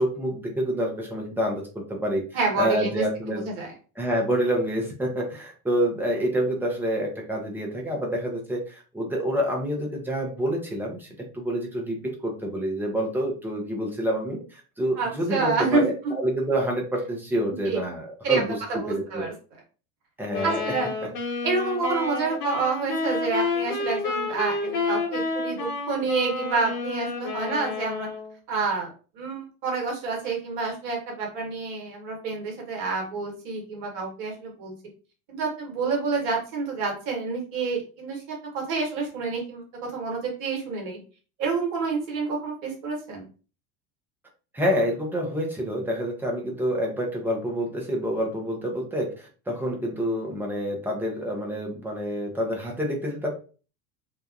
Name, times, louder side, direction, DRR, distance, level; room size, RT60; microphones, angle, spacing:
voice 1, 0.0-2.2 2.6-3.4 4.0-11.1 11.3-18.5 18.9-19.2 20.2-20.6 44.5-53.3, equal, 5° right, -1 dB, 0.7 m, -27 dB
voice 2, 2.3-3.0 3.3-3.7 15.0-15.9 17.6-17.8 18.2-19.3 20.4-20.9 21.4-28.1 28.5-34.7 35.3-41.0 41.4-43.2, right 4 dB, 50° right, 1 dB, 1.2 m, -28 dB
sound 1, 20.3-28.3, left 3 dB, 65° left, 1.2 m, -30 dB
2.8 x 2.2 x 2.4 m, 0.37 s
figure-of-eight pair, 75°, 48 cm